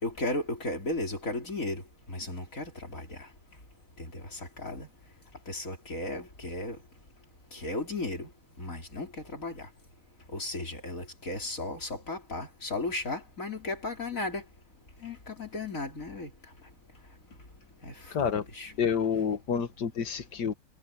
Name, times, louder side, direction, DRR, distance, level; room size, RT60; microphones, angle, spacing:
voice 1, 0.0-1.8 2.1-3.2 4.0-4.9 5.5-6.8 7.5-8.3 8.6-9.7 10.3-14.4 15.0-16.3 17.8-18.7 20.4-20.5, left 2 dB, 50° left, 4.6 m, -35 dB
voice 2, 18.1-18.4 18.8-20.5, left 7 dB, 75° left, 2.1 m, -28 dB
omnidirectional pair, 1.8 m